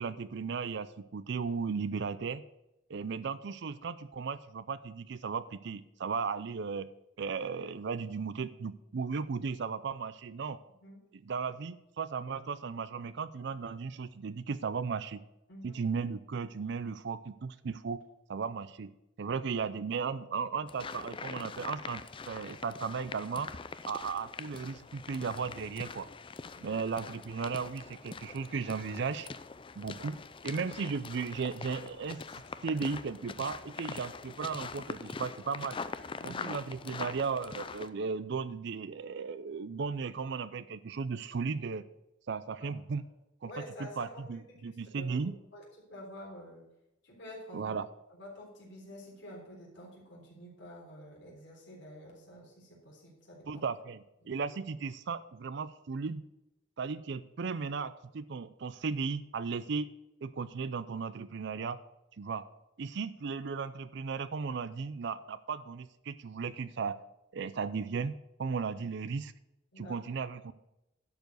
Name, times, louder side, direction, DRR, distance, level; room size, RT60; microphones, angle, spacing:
voice 1, 0.0-2.4 2.9-6.9 7.2-10.6 11.1-15.2 15.6-18.0 18.3-23.5 23.9-26.1 26.6-29.3 29.8-30.2 30.4-32.2 32.6-35.8 36.2-41.8 42.3-43.1 43.4-43.5 43.8-45.3 47.5-47.9 53.5-56.2 56.8-59.9 60.2-61.8 62.2-62.5 62.8-67.0 67.3-69.3 69.8-70.5, right 5 dB, 60° right, 15 dB, 0.4 m, -36 dB
voice 2, 15.5-15.8 26.5-26.8 36.2-36.5 36.9-37.2 42.6-42.7 43.4-44.1 44.3-45.2 45.5-45.6 45.9-46.6 47.0-47.8 48.1-53.6 69.7-70.0, equal, 60° left, -3 dB, 3.8 m, -49 dB
sound 1, 20.7-37.9, left 4 dB, 25° left, 0.5 m, -43 dB
11.5 x 4.9 x 7.8 m, 0.88 s
head